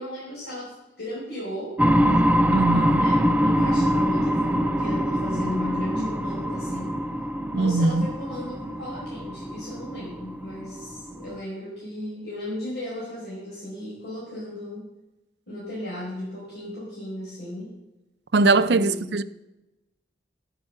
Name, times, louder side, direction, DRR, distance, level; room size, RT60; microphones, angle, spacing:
voice 1, 0.0-1.8 2.9-7.0 7.6-14.8 15.5-17.7 18.6-19.2, left 1 dB, 65° left, 5.0 m, -35 dB
sound 1, 1.8-11.3, equal, 10° right, 0.4 m, -24 dB
voice 2, 2.5-3.1 7.5-8.1 18.3-19.2, right 3 dB, 65° right, 0.5 m, -21 dB
11.5 x 10.5 x 5.8 m
head